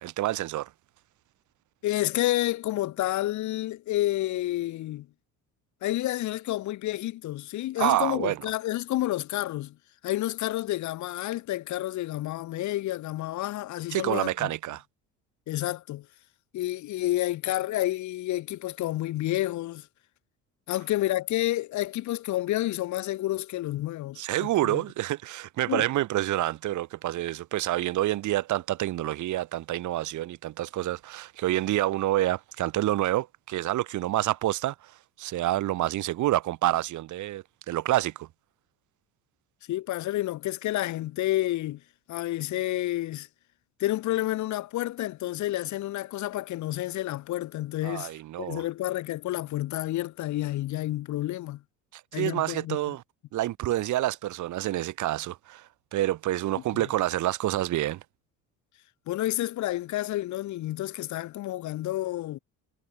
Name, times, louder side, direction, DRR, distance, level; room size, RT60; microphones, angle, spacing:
voice 1, 0.0-0.7 7.8-8.4 13.9-14.8 24.2-38.3 47.8-48.6 51.9-53.0 53.3-58.0, right 15 dB, 65° right, 3.1 m, -28 dB
voice 2, 1.8-5.1 5.8-9.7 10.0-14.5 15.5-16.1 16.5-19.9 20.7-24.8 25.7-25.9 39.7-41.8 42.1-43.3 43.8-48.1 48.4-51.6 52.1-53.0 59.1-62.4, left 15 dB, 65° left, 1.5 m, -30 dB
cardioid pair, 105°, 32 cm